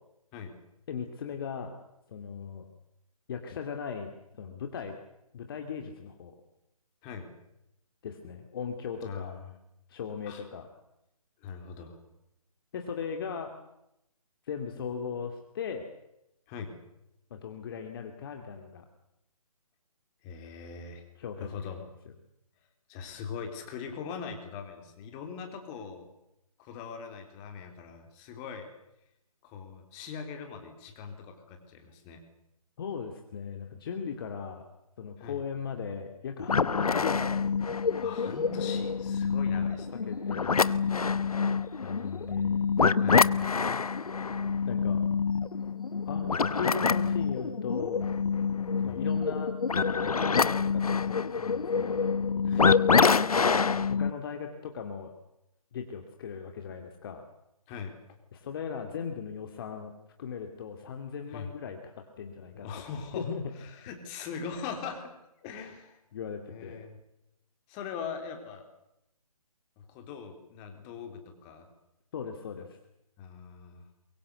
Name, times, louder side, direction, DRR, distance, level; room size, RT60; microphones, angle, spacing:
voice 1, 0.9-1.7 2.1-2.6 3.3-5.0 5.3-6.3 8.0-9.4 9.9-10.7 12.7-13.5 14.5-15.9 17.3-18.8 21.2-21.6 32.8-34.6 35.0-37.3 40.1-40.6 41.8-42.7 44.7-45.0 46.0-46.3 46.6-48.1 48.8-49.5 50.0-52.0 53.4-55.1 55.7-57.2 58.3-59.9 60.2-62.7 63.1-63.4 66.1-66.8 72.1-72.7, left 6 dB, 40° left, 5 dB, 2.5 m, -38 dB
voice 2, 9.0-9.5 10.3-10.4 11.4-12.0 16.5-16.7 20.2-21.0 21.4-21.9 22.9-26.1 26.6-28.7 29.4-32.2 35.2-35.4 38.0-40.0 43.0-43.3 48.8-49.0 52.4-52.7 57.7-57.9 61.3-61.5 62.5-63.3 63.6-65.1 65.4-66.0 66.5-67.0 67.7-68.6 69.8-71.7 73.2-73.8, left 6 dB, 20° left, 5 dB, 3.6 m, -41 dB
sound 1, 36.4-54.1, left 5 dB, 70° left, 1.0 m, -26 dB
23.0 x 23.0 x 8.2 m, 0.85 s
figure-of-eight pair, 145°, 19 cm